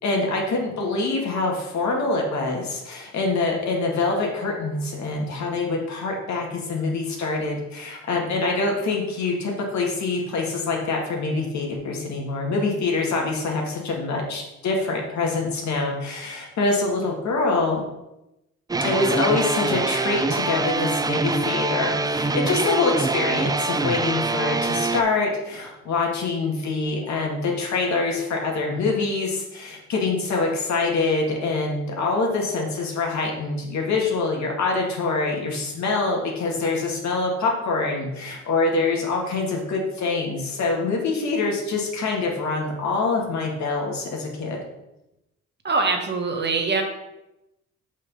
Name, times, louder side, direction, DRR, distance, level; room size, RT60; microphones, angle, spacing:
voice 1, 0.0-17.8 18.8-44.6, left 3 dB, 65° left, 0 dB, 2.1 m, -25 dB
sound 1, 18.7-25.0, right 3 dB, 15° right, 0.4 m, -24 dB
voice 2, 45.6-46.8, right 3 dB, 35° right, 3 dB, 1.4 m, -23 dB
6.0 x 5.4 x 5.4 m, 0.92 s
cardioid pair, 90°, 30 cm